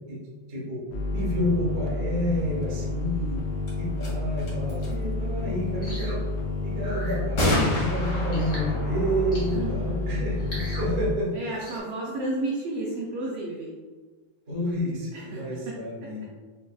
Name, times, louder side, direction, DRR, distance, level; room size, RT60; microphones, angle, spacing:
voice 1, 0.5-0.8 1.1-3.4 3.8-6.2 6.6-11.3 11.6-11.7 14.5-16.2, equal, 65° right, -7 dB, 0.6 m, -29 dB
sound 1, 0.9-11.1, left 3 dB, 85° left, 1.5 m, -30 dB
sound 2, 3.7-3.8 4.0-4.1 4.4-4.9 7.4-10.8, left 1 dB, 60° left, 1.0 m, -29 dB
sound 3, 5.8-6.2 6.8-7.2 8.3-8.7 9.3-9.6 10.4-10.9 11.6-11.8, equal, 40° left, 0.7 m, -40 dB
voice 2, 9.5-10.2 11.3-13.8 15.1-15.7 16.0-16.4, right 2 dB, 85° right, -4 dB, 1.3 m, -33 dB
5.6 x 2.3 x 2.2 m, 1.4 s
omnidirectional pair, 3.4 m